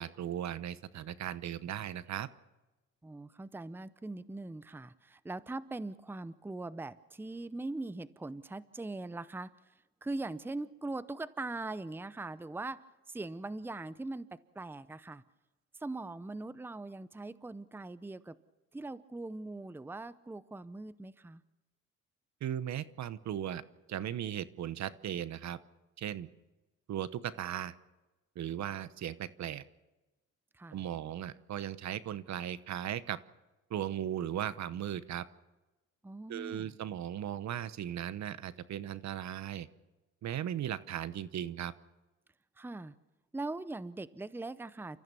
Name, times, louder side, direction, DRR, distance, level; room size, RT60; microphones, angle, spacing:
voice 1, 0.0-2.3 22.4-23.6 23.9-25.6 26.0-26.3 26.9-27.7 28.4-29.6 30.7-33.2 33.7-35.2 36.3-39.7 40.2-41.7, right 10 dB, 65° right, 16 dB, 1.0 m, -37 dB
voice 2, 3.0-9.5 10.0-12.8 13.1-14.3 14.5-15.2 15.8-18.4 18.7-21.4 30.6-30.8 36.0-36.7 42.6-42.9 43.3-45.0, right 2 dB, 5° right, 16 dB, 0.7 m, -41 dB
29.5 x 14.5 x 6.9 m, 1.1 s
cardioid pair, 90°, 30 cm